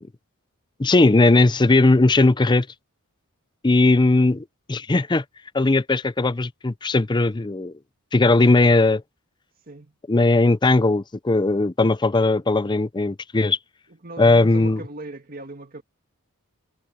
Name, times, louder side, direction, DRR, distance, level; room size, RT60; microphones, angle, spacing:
voice 1, 0.8-2.7 3.6-5.2 5.5-7.7 8.1-9.0 10.1-13.6 14.2-14.8, left 2 dB, 20° left, 0.5 m, -18 dB
voice 2, 9.6-10.0 13.9-15.8, right 2 dB, 40° right, 1.8 m, -39 dB
head